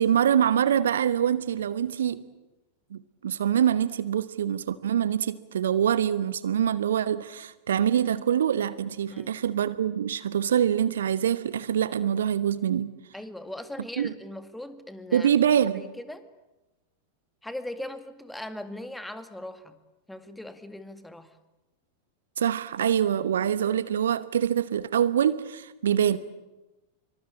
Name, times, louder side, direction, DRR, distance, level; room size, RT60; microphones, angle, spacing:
voice 1, 0.0-2.2 2.9-12.9 14.0-14.1 15.1-15.9 22.4-26.2, right 9 dB, 65° right, 15 dB, 1.0 m, -25 dB
voice 2, 13.1-15.3 15.7-16.3 17.4-19.8 20.1-21.4, left 1 dB, 5° left, 10 dB, 2.1 m, -39 dB
25.0 x 24.5 x 8.7 m, 1.0 s
figure-of-eight pair, 90°, 0 cm